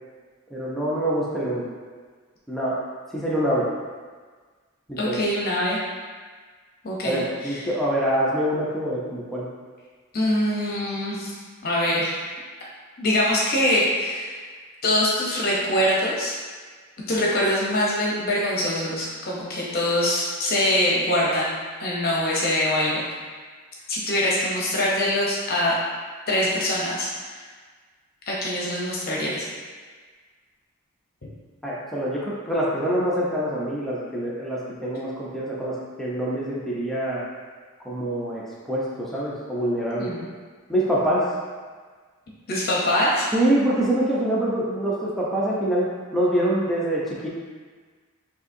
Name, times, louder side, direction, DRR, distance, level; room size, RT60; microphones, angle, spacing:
voice 1, 0.5-1.7 2.5-2.8 3.1-3.7 4.9-5.2 7.0-9.5 31.6-37.2 37.8-38.4 38.7-40.1 40.7-41.3 43.3-47.3, right 1 dB, ahead, -7 dB, 0.6 m, -25 dB
voice 2, 5.0-5.8 6.8-7.7 10.1-11.3 11.6-12.2 13.0-14.4 14.8-16.4 17.1-23.0 23.9-25.8 26.3-27.4 28.3-29.5 40.0-40.2 42.5-43.3, left 1 dB, 45° left, -4 dB, 0.8 m, -24 dB
6.8 x 2.7 x 2.6 m, 1.5 s
head